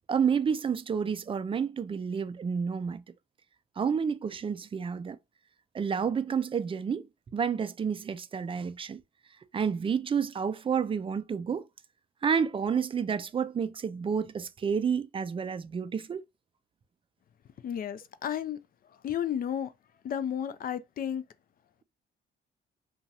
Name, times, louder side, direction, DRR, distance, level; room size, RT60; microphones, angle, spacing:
voice 1, 0.1-3.0 3.8-5.2 5.7-7.1 7.3-9.0 9.5-11.7 12.2-16.2, right 6 dB, 25° right, 0.3 m, -30 dB
voice 2, 17.6-18.6 18.8-19.7 20.0-21.2, left 9 dB, 45° left, 0.4 m, -33 dB
2.9 x 2.3 x 2.7 m
cardioid pair, 90°, 20 cm